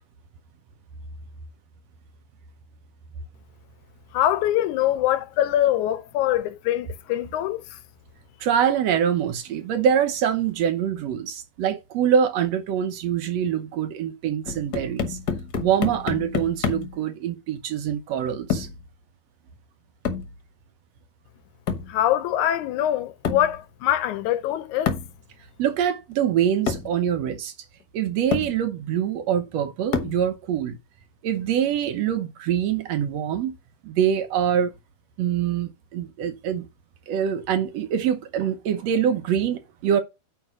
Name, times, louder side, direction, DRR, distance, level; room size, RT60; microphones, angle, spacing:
voice 1, 4.1-7.8 21.9-25.0, left 12 dB, 90° left, 2.2 m, -23 dB
voice 2, 8.4-15.2 15.6-18.7 25.6-27.5 27.9-30.8 31.2-33.5 33.8-34.7 35.2-36.7 37.1-40.0, right 9 dB, 70° right, 1.9 m, -24 dB
sound 1, 14.4-17.0 18.5-18.8 20.0-20.3 21.7-22.0 23.2-23.6 24.9-25.2 26.1-26.2 26.7-27.0 27.8-27.9 28.3-28.6 29.9-30.3, left 6 dB, 50° left, 1.3 m, -28 dB
9.3 x 3.4 x 6.1 m
omnidirectional pair, 3.3 m